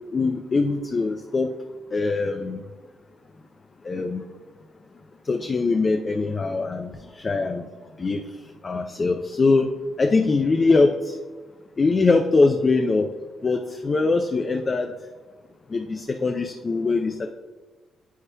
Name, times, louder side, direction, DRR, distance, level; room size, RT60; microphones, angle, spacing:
voice 1, 0.1-1.5 1.9-2.6 3.8-4.2 5.3-7.6 8.0-8.2 8.6-9.7 10.0-11.2 11.8-13.1 13.4-14.9 15.7-17.3, left 3 dB, 30° left, 5 dB, 0.4 m, -22 dB
9.2 x 8.5 x 2.2 m, 1.3 s
cardioid pair, 130°, 0 cm